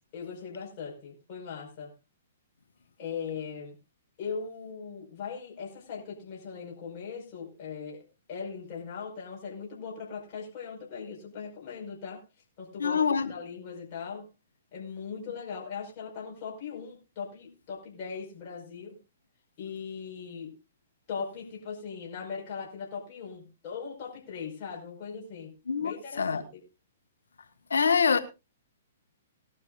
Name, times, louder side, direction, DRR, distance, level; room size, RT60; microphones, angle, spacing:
voice 1, 0.1-1.9 3.0-3.8 4.2-12.2 12.6-13.0 13.3-14.3 14.7-19.0 19.6-20.5 21.1-25.5 25.8-26.6, left 6 dB, 40° left, 5.3 m, -39 dB
voice 2, 12.8-13.3 25.7-25.9 26.2-26.4 27.7-28.2, left 6 dB, 85° left, 1.5 m, -24 dB
19.5 x 12.0 x 2.5 m
hypercardioid pair, 135°, 0 cm